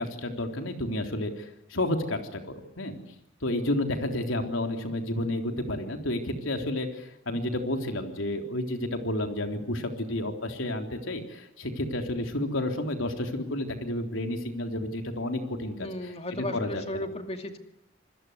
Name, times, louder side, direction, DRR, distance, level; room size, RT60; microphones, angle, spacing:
voice 1, 0.0-3.0 3.4-15.9 16.3-17.1, left 1 dB, 80° left, 4 dB, 3.7 m, -31 dB
voice 2, 15.8-17.6, left 1 dB, 30° left, 6 dB, 2.4 m, -35 dB
26.5 x 21.0 x 8.1 m, 0.78 s
head